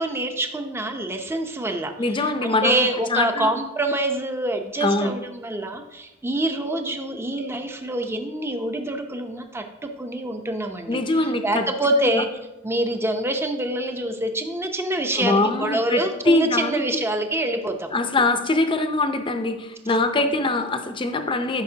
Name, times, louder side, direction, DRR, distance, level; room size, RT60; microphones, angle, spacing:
voice 1, 0.0-9.6 10.0-12.3 12.6-17.9, right 1 dB, 10° right, 5 dB, 0.7 m, -26 dB
voice 2, 2.0-3.5 4.8-5.1 10.9-11.7 12.0-12.2 15.2-16.8 17.9-21.6, left 2 dB, 25° left, 7 dB, 0.6 m, -23 dB
13.0 x 5.8 x 2.8 m, 0.97 s
head